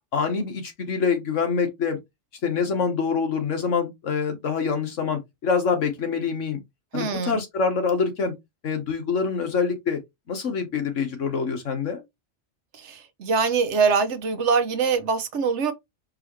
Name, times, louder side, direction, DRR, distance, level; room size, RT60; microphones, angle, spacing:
voice 1, 0.1-2.0 2.4-6.6 6.9-8.3 8.6-10.0 10.3-12.0, left 5 dB, 70° left, 1.5 m, -25 dB
voice 2, 6.9-7.4 12.7-15.7, right 5 dB, 65° right, 1.0 m, -23 dB
4.7 x 2.9 x 3.1 m
omnidirectional pair, 1.3 m